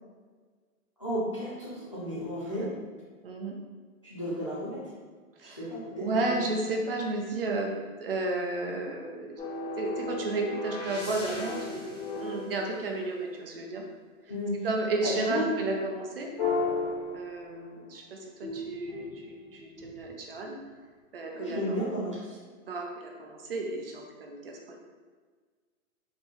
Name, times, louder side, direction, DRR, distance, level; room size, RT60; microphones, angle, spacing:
voice 1, 1.0-2.7 4.0-4.8 5.4-6.5 14.3-14.5 15.0-15.4 21.3-22.4, equal, 25° left, -9 dB, 0.4 m, -33 dB
voice 2, 3.2-3.5 5.4-5.6 6.0-7.7 8.0-9.4 9.8-11.8 12.2-13.8 14.6-16.3 17.1-18.2 18.5-20.6 21.1-21.6 22.7-24.8, right 2 dB, 45° right, 1 dB, 0.6 m, -32 dB
sound 1, 9.4-13.5 16.4-17.9 18.4-20.2, left 3 dB, 45° left, 1.1 m, -35 dB
4.4 x 3.0 x 3.5 m, 1.5 s
hypercardioid pair, 175°, 42 cm